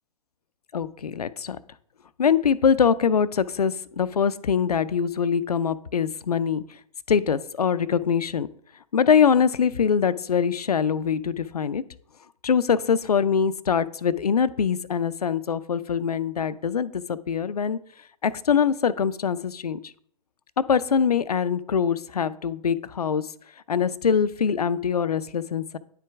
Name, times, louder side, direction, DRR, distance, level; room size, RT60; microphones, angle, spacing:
voice 1, 0.7-1.6 2.2-6.6 7.1-8.5 8.9-11.8 12.4-17.8 18.2-19.9 20.6-23.3 23.7-25.8, left 7 dB, 80° left, 16 dB, 0.4 m, -23 dB
9.6 x 4.6 x 3.5 m, 0.62 s
figure-of-eight pair, 115°, 20 cm